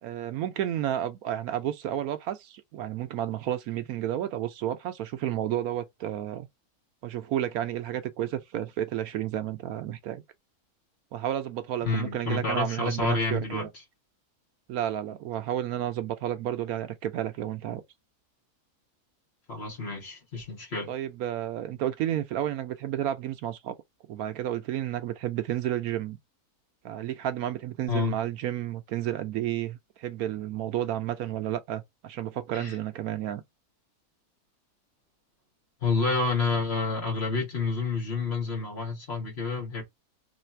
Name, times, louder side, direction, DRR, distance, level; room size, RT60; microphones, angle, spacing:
voice 1, 0.0-6.5 7.0-10.2 11.1-13.7 14.7-17.8 20.9-23.7 24.1-26.2 26.8-33.4, right 11 dB, 75° right, 1.0 m, -31 dB
voice 2, 11.8-13.7 19.5-20.9 27.9-28.1 32.5-32.7 35.8-39.8, left 3 dB, 45° left, 1.6 m, -29 dB
3.3 x 3.1 x 4.3 m
omnidirectional pair, 1.6 m